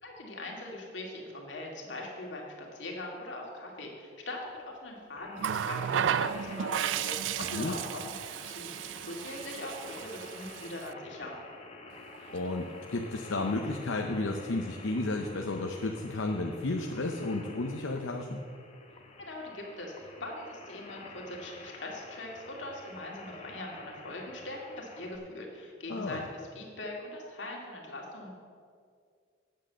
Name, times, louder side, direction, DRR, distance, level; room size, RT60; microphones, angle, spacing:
voice 1, 0.0-11.4 19.2-28.3, left 1 dB, 70° left, -1 dB, 2.3 m, -41 dB
sound 1, 5.2-25.2, left 2 dB, 35° left, 1.0 m, -49 dB
Water tap faucet, 5.4-10.9 12.1-12.3, right 9 dB, 75° right, 0.3 m, -34 dB
voice 2, 12.3-18.5 25.9-26.2, left 2 dB, 90° left, 3 dB, 0.7 m, -32 dB
9.2 x 7.6 x 7.4 m, 2.2 s
head